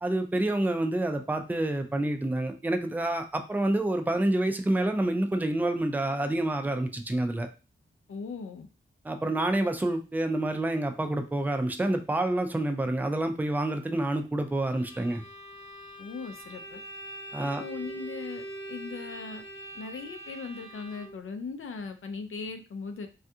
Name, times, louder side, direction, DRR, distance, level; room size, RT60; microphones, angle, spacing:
voice 1, 0.0-7.5 9.0-15.2 17.3-17.6, right 1 dB, 10° right, 6 dB, 0.3 m, -28 dB
voice 2, 8.1-8.7 16.0-16.8 17.5-19.4 19.7-23.1, left 4 dB, 85° left, 7 dB, 0.5 m, -39 dB
Bowed string instrument, 14.7-21.3, right 1 dB, 30° left, 1.1 m, -43 dB
3.4 x 2.3 x 2.7 m, 0.32 s
wide cardioid pair, 140°, 21 cm